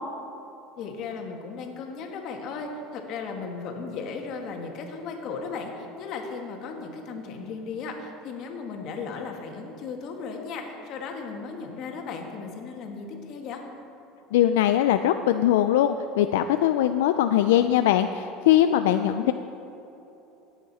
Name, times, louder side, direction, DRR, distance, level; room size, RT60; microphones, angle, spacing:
voice 1, 0.8-13.6 19.1-19.3, left 4 dB, 55° left, 2 dB, 1.7 m, -36 dB
voice 2, 14.3-19.3, left 11 dB, 90° left, 8 dB, 0.4 m, -21 dB
17.0 x 8.1 x 4.2 m, 3.0 s
supercardioid pair, 125°, 0 cm